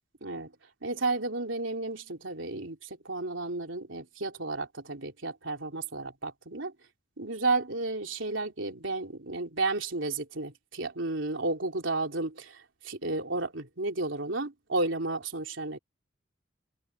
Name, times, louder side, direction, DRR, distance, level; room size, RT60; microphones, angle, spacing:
voice 1, 0.2-0.5 0.8-6.7 7.2-15.8, right 3 dB, 90° right, 3.3 m, -32 dB
head